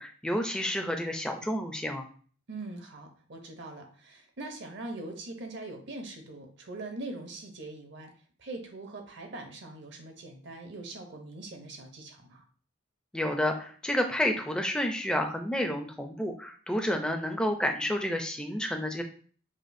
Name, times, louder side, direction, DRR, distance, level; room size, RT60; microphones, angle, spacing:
voice 1, 0.0-2.0 13.1-19.0, left 1 dB, 5° left, 4 dB, 0.4 m, -30 dB
voice 2, 2.5-8.1 8.4-12.4, right 2 dB, 60° right, 4 dB, 0.7 m, -42 dB
5.0 x 2.1 x 2.6 m, 0.43 s
head